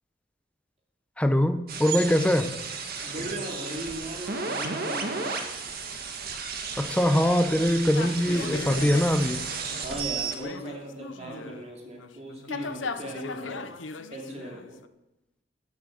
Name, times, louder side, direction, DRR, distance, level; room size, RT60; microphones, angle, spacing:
voice 1, 1.2-2.6 6.8-9.4, equal, 5° left, 8 dB, 0.8 m, -23 dB
sound 1, 1.7-10.3, right 5 dB, 55° right, 1.9 m, -33 dB
voice 2, 3.0-5.4 9.8-13.6 14.1-14.8, right 1 dB, 35° right, 0 dB, 2.9 m, -38 dB
sound 2, 7.9-11.6 12.0-14.9, left 4 dB, 80° left, 0.7 m, -38 dB
14.0 x 7.5 x 7.7 m, 0.92 s
head